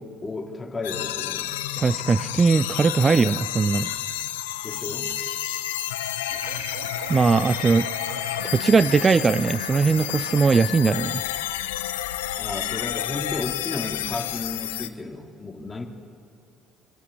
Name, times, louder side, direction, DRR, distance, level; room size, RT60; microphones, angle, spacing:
voice 1, 0.0-1.5 4.6-5.2 12.4-15.8, left 3 dB, 25° left, 3 dB, 2.8 m, -33 dB
sound 1, 0.8-14.9, left 13 dB, 85° left, 0.7 m, -30 dB
voice 2, 1.8-3.9 7.1-7.9 8.4-11.2, right 5 dB, 35° right, 16 dB, 0.5 m, -20 dB
sound 2, 6.3-10.7, right 6 dB, 80° right, 1.1 m, -39 dB
25.0 x 11.5 x 9.8 m, 2.4 s
hypercardioid pair, 60°, 0 cm